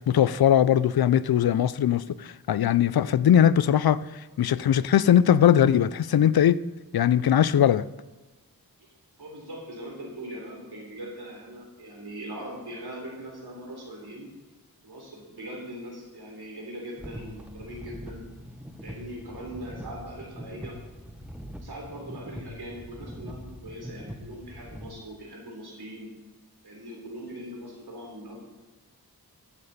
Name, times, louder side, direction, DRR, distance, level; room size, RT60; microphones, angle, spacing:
voice 1, 0.0-6.6 6.9-7.9, left 10 dB, 70° left, 17 dB, 0.5 m, -20 dB
voice 2, 9.2-14.3 14.8-18.2 18.8-20.8 21.6-26.1 26.6-28.4, right 1 dB, 80° right, -1 dB, 3.6 m, -41 dB
sound 1, 17.0-24.9, equal, 5° right, 1.0 m, -42 dB
14.5 x 6.8 x 4.2 m, 1.2 s
wide cardioid pair, 55°, 38 cm